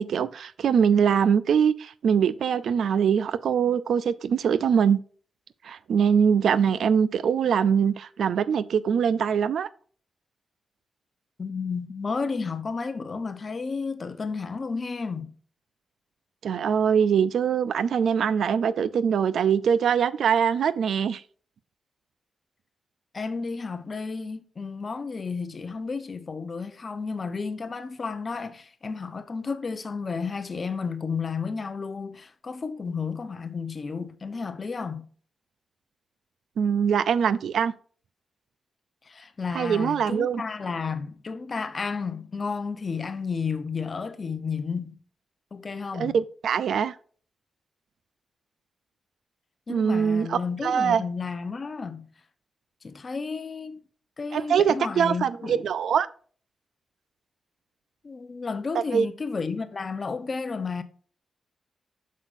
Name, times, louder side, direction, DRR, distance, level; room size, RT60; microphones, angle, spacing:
voice 1, 0.0-5.0 5.6-9.7 16.4-21.2 36.6-37.7 39.5-40.4 45.9-47.0 49.7-51.0 54.3-56.1 58.7-59.1, right 7 dB, 80° right, 0.4 m, -23 dB
voice 2, 11.4-15.3 23.1-35.0 39.1-45.0 45.5-46.2 49.7-52.1 52.8-53.8 54.2-55.7 58.0-60.8, left 5 dB, 35° left, 0.7 m, -32 dB
7.9 x 6.3 x 2.5 m
wide cardioid pair, 160°, 0 cm